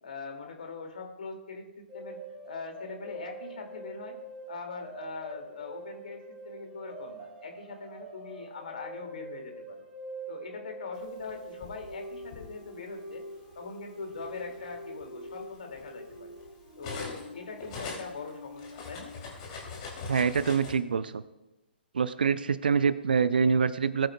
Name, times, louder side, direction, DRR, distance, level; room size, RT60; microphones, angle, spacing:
voice 1, 0.0-2.2 2.5-4.2 4.5-9.9 10.3-13.2 13.5-16.4 16.8-19.1, left 4 dB, 55° left, 3 dB, 2.1 m, -42 dB
sound 1, 1.9-19.3, right 1 dB, 10° right, 3.3 m, -45 dB
Cutlery silverware, 11.2-12.5 13.4-13.6 14.0-17.3 17.6-20.7, left 4 dB, 35° left, 2.7 m, -42 dB
voice 2, 20.1-21.2 21.9-24.1, right 6 dB, 60° right, 15 dB, 0.6 m, -25 dB
19.5 x 8.7 x 2.2 m, 1.0 s
figure-of-eight pair, 125°, 6 cm